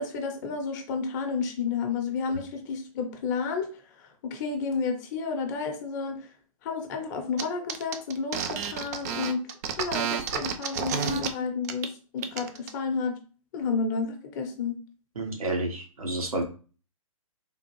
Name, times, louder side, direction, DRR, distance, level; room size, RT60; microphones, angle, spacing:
voice 1, 0.0-6.2 6.6-9.4 9.7-13.2 13.5-14.7, left 5 dB, 30° left, 4 dB, 0.8 m, -31 dB
sound 1, 7.4-7.5 7.7-11.3 11.6-11.9 12.2-12.7, right 8 dB, 30° right, 0.4 m, -30 dB
voice 2, 15.2-16.4, right 2 dB, 75° right, 1 dB, 1.2 m, -30 dB
3.6 x 2.4 x 3.0 m, 0.37 s
figure-of-eight pair, 130°, 18 cm